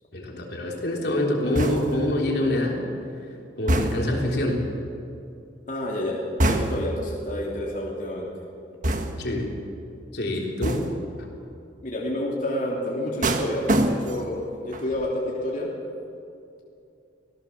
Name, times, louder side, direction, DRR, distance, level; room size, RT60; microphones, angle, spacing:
voice 1, 0.1-2.8 3.6-4.6 9.2-9.5 10.1-10.8, left 1 dB, 65° left, 0 dB, 3.6 m, -25 dB
sound 1, 1.5-2.1 3.7-4.3 6.4-7.0 8.8-9.4 10.6-11.1 13.2-14.3 14.7-15.1, right 1 dB, 45° right, 1.5 m, -25 dB
voice 2, 5.7-8.3 11.8-15.7, left 1 dB, 45° left, -4 dB, 3.0 m, -29 dB
24.5 x 16.5 x 7.3 m, 2.6 s
head